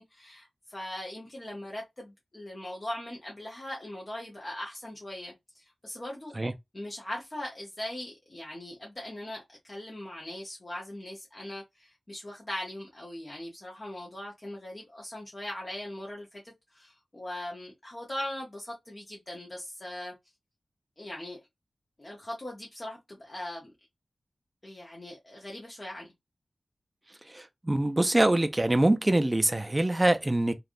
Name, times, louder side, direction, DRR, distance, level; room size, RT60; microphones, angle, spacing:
voice 1, 0.0-6.4 6.7-20.1 21.0-21.4 22.0-23.7 24.6-26.1, left 1 dB, 35° left, 0.8 m, -40 dB
voice 2, 27.3-30.5, right 1 dB, 20° right, 0.4 m, -24 dB
3.3 x 2.4 x 2.5 m
wide cardioid pair, 65°, 0 cm